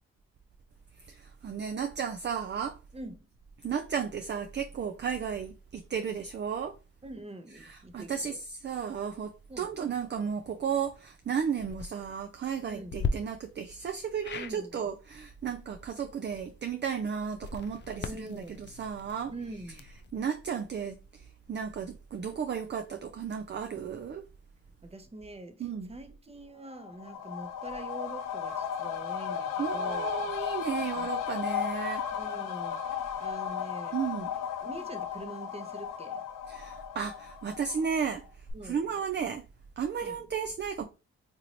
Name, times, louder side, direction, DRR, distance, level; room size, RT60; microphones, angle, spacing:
voice 1, 1.0-2.8 3.6-6.8 7.5-19.3 20.1-24.3 25.6-25.9 29.6-32.1 33.9-34.3 36.5-39.4 39.8-40.8, right 7 dB, 35° right, 0.5 m, -34 dB
voice 2, 2.9-3.3 7.0-8.4 9.5-9.7 12.6-13.0 14.3-14.8 18.0-18.7 19.3-19.8 24.8-30.2 31.0-31.1 32.1-33.9 34.6-36.2 38.5-38.9 40.0-40.3, right 2 dB, 20° right, 0.8 m, -44 dB
sound 1, 11.5-11.9 12.9-13.1 14.2-14.5 17.3-20.1, left 4 dB, 35° left, 0.4 m, -37 dB
sound 2, 26.7-38.2 38.5-38.6, left 8 dB, 80° left, 0.6 m, -35 dB
2.9 x 2.5 x 3.0 m
supercardioid pair, 45°, 32 cm